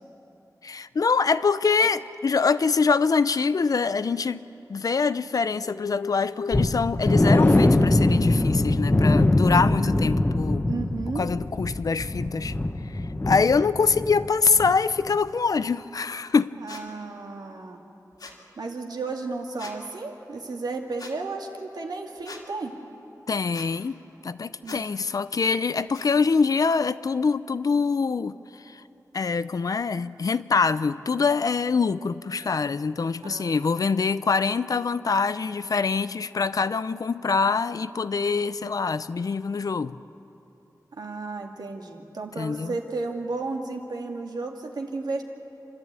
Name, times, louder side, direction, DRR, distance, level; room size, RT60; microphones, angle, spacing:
voice 1, 0.6-4.4 4.7-10.7 11.2-12.5 12.9-16.5 23.3-24.0 24.2-28.8 29.1-40.0 42.4-42.7, left 5 dB, 60° left, 15 dB, 0.5 m, -24 dB
sound 1, 6.5-14.3 14.5-14.7 15.1-15.2, left 2 dB, 25° left, 1.1 m, -22 dB
voice 2, 10.7-11.3 16.6-17.8 18.6-22.7 24.6-24.9 33.2-33.9 40.9-45.2, right 3 dB, 85° right, 2 dB, 2.1 m, -33 dB
sound 2, 16.7-16.8 18.2-18.4 19.6-19.8 21.0-21.1 22.2-22.4 23.5-23.7 24.6-24.8 25.9-26.1, left 3 dB, 80° left, 2.2 m, -41 dB
28.0 x 12.5 x 8.8 m, 2.9 s
wide cardioid pair, 105°, 7 cm